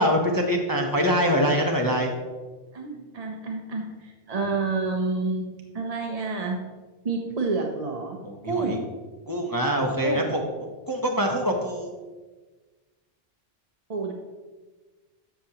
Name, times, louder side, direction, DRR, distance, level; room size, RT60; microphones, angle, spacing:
voice 1, 0.0-2.1 8.2-8.8 9.3-11.9, equal, 20° left, 1 dB, 0.7 m, -24 dB
voice 2, 2.7-5.5 5.7-6.6 7.0-8.2 8.4-8.8 10.0-10.3 13.9-14.1, right 3 dB, 40° right, 1 dB, 0.7 m, -29 dB
12.5 x 6.0 x 2.9 m, 1.3 s
omnidirectional pair, 1.2 m